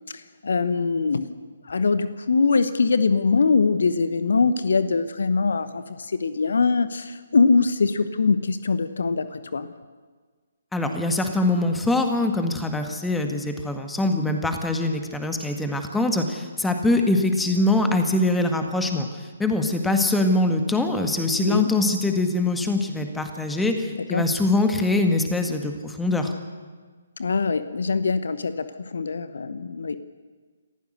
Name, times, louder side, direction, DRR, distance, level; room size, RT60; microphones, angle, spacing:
voice 1, 0.1-1.4 1.6-9.7 21.4-21.7 23.9-24.2 27.2-30.0, left 4 dB, 65° left, 13 dB, 1.0 m, -23 dB
voice 2, 10.7-19.1 19.4-26.3, left 2 dB, 5° left, 5 dB, 1.9 m, -23 dB
28.5 x 15.0 x 6.6 m, 1.5 s
figure-of-eight pair, 135°, 0 cm